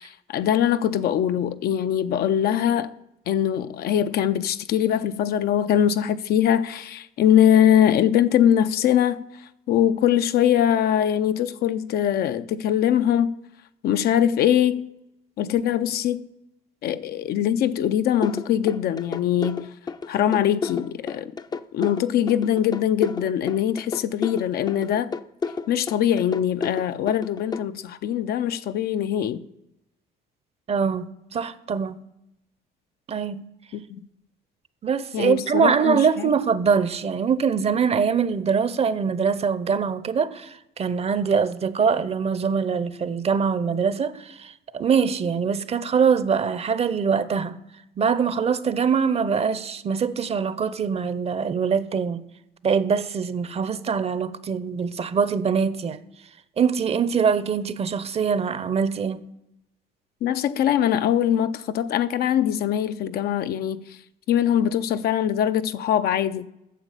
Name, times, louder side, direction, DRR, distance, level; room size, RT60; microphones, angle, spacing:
voice 1, 0.0-2.9 3.3-9.2 9.7-13.3 13.8-14.9 15.4-16.3 16.8-19.7 20.1-21.3 21.7-25.1 25.7-29.4 33.7-34.0 35.1-36.3 60.2-64.0 64.3-66.5, left 10 dB, 70° left, 0.6 m, -22 dB
sound 1, 18.2-27.6, left 4 dB, 25° left, 0.5 m, -31 dB
voice 2, 30.7-32.0 33.1-33.4 34.8-47.6 48.0-52.2 52.6-56.0 56.6-59.2, right 6 dB, 35° right, 0.7 m, -23 dB
9.3 x 7.2 x 8.3 m
cardioid pair, 110°, 17 cm